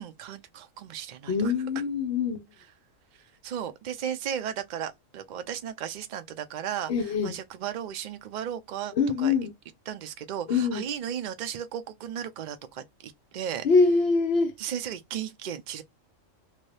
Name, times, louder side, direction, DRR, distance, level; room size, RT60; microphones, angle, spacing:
voice 1, 0.0-1.5 3.4-9.3 9.9-13.7 14.6-15.8, right 9 dB, 70° right, 0.4 m, -35 dB
voice 2, 1.3-2.4 6.9-7.3 9.0-9.5 10.5-10.8 13.6-14.5, left 4 dB, 55° left, 0.8 m, -24 dB
2.9 x 2.6 x 3.2 m
omnidirectional pair, 1.4 m